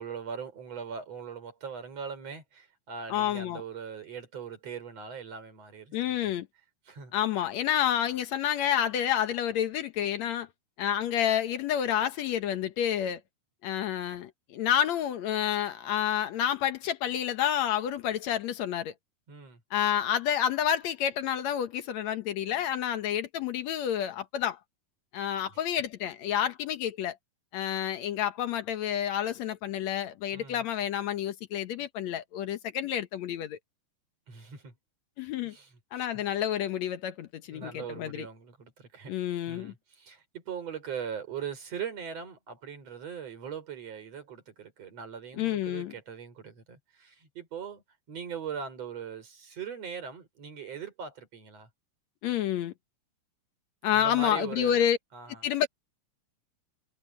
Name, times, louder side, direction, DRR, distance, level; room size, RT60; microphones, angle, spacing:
voice 1, 0.0-6.3 6.9-7.1 19.3-19.6 25.5-25.7 30.3-30.6 34.3-34.7 35.4-35.7 37.5-39.1 39.5-47.8 48.1-51.7 53.9-55.4, right 7 dB, 50° right, 6.1 m, -40 dB
voice 2, 3.1-3.6 5.9-6.5 7.1-10.5 10.8-13.2 13.6-18.9 19.7-24.6 25.1-27.2 27.5-33.6 35.2-35.6 35.9-38.3 39.1-39.7 45.3-45.9 52.2-52.7 53.8-55.0 55.4-55.7, left 10 dB, 65° left, 2.1 m, -29 dB
omnidirectional pair, 3.9 m